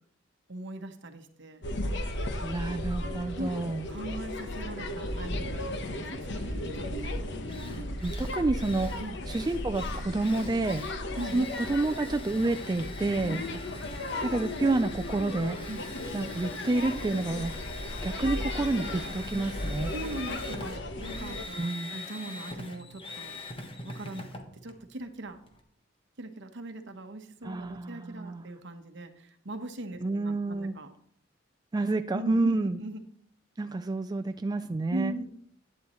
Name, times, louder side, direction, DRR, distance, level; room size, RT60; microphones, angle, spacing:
voice 1, 0.5-1.7 3.4-3.5 3.9-7.3 9.0-9.2 11.2-11.5 13.3-13.7 15.7-15.9 19.9-24.3 24.6-25.4 26.2-30.9 32.1-33.0 34.9-35.2, right 1 dB, 65° right, 6 dB, 1.1 m, -40 dB
Kids in the playground, 1.6-21.5, left 1 dB, 65° left, 1.1 m, -35 dB
voice 2, 2.4-3.8 8.0-9.0 9.3-10.8 11.3-13.4 14.2-15.6 16.1-17.6 18.0-19.9 21.6-21.9 27.4-28.5 30.0-30.8 31.7-32.8 33.6-35.1, right 2 dB, 20° right, 8 dB, 0.4 m, -29 dB
Drill, 7.0-7.1 7.5-25.6, left 2 dB, 30° left, 1.3 m, -44 dB
12.0 x 9.5 x 3.1 m, 0.62 s
head